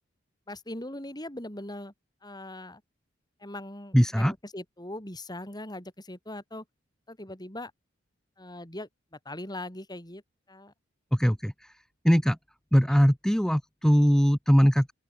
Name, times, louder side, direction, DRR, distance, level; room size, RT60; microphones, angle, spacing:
voice 1, 0.5-1.9 2.2-2.8 3.4-6.6 7.1-7.7 8.4-10.2 10.5-10.7, left 1 dB, 20° left, 7.4 m, -40 dB
voice 2, 3.9-4.3 11.1-11.5 12.0-12.4 12.7-14.9, equal, 5° left, 1.3 m, -21 dB
open air
head